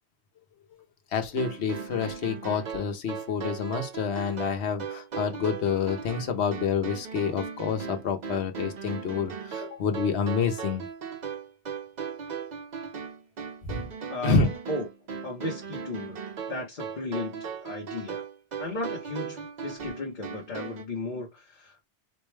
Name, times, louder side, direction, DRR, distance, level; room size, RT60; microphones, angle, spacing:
voice 1, 1.1-10.9 13.6-13.8 14.2-14.5, left 6 dB, 70° left, 1.0 m, -28 dB
sound 1, 1.4-20.8, right 6 dB, 50° right, 0.6 m, -37 dB
voice 2, 15.2-16.2 16.5-18.2 18.6-21.8, left 2 dB, 45° left, 0.9 m, -35 dB
4.3 x 2.2 x 3.1 m
omnidirectional pair, 1.2 m